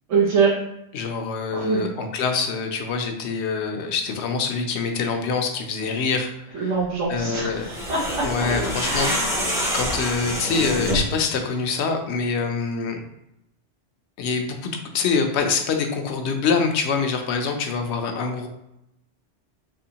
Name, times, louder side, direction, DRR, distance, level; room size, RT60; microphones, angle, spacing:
voice 1, 0.1-0.5 1.5-1.9 6.5-8.0 8.8-9.2, right 5 dB, 80° right, -5 dB, 1.1 m, -23 dB
voice 2, 0.9-6.8 7.1-7.7 8.2-9.4 9.7-13.0 14.2-18.5, left 5 dB, 70° left, 5 dB, 0.8 m, -25 dB
sound 1, 7.6-11.2, equal, 5° right, 0.5 m, -26 dB
3.4 x 3.0 x 2.8 m, 0.84 s
omnidirectional pair, 1.2 m